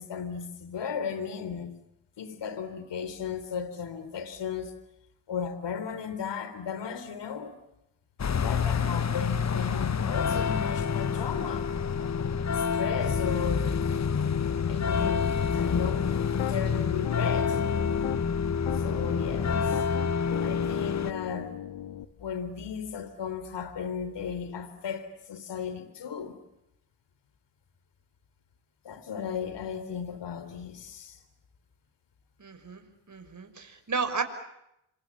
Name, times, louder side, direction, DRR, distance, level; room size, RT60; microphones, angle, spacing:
voice 1, 0.0-1.8 2.2-4.8 5.3-7.6 8.3-11.7 12.5-13.9 14.6-16.1 16.5-17.6 18.7-19.8 20.4-21.5 22.2-26.4 28.8-31.2, left 7 dB, 70° left, 3.6 m, -35 dB
sound 1, 8.2-21.1, left 6 dB, 35° left, 1.2 m, -27 dB
Piano, 15.6-16.6 17.0-18.3 18.7-22.0, left 12 dB, 85° left, 1.6 m, -38 dB
voice 2, 32.4-34.2, right 5 dB, 40° right, 5.9 m, -33 dB
27.5 x 26.5 x 7.5 m
supercardioid pair, 55°, 44 cm